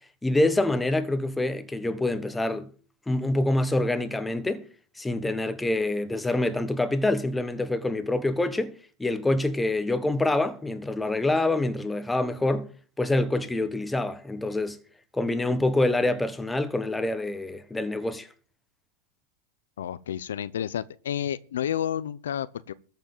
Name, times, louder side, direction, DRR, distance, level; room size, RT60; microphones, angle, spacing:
voice 1, 0.2-2.7 3.1-4.6 5.0-8.7 9.0-12.7 13.0-14.8 15.1-18.3, left 2 dB, 10° left, 1.3 m, -26 dB
voice 2, 19.8-22.7, left 10 dB, 85° left, 0.7 m, -30 dB
14.0 x 5.9 x 7.3 m
hypercardioid pair, 120°, 0 cm